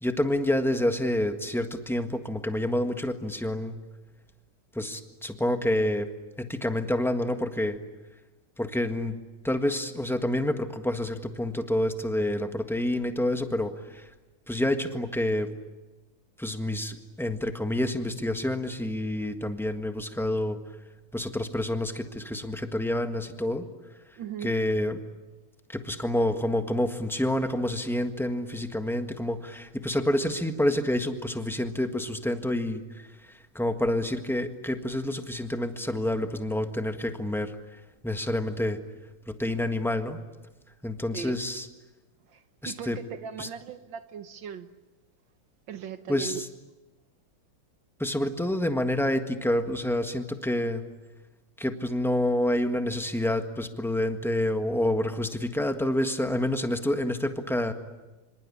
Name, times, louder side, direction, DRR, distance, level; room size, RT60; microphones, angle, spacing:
voice 1, 0.0-3.8 4.7-6.1 6.4-7.8 8.6-9.2 9.4-14.1 14.5-15.5 16.4-20.6 21.1-23.7 24.4-25.0 25.7-37.6 38.0-38.8 39.3-40.2 40.8-41.7 42.6-43.0 43.4-43.5 46.1-46.5 48.0-50.8 51.6-57.7, left 1 dB, ahead, 1.2 m, -28 dB
voice 2, 24.2-24.6 41.1-41.4 42.3-44.7 45.7-46.5, right 7 dB, 65° right, 1.8 m, -38 dB
26.5 x 25.5 x 8.5 m
omnidirectional pair, 2.3 m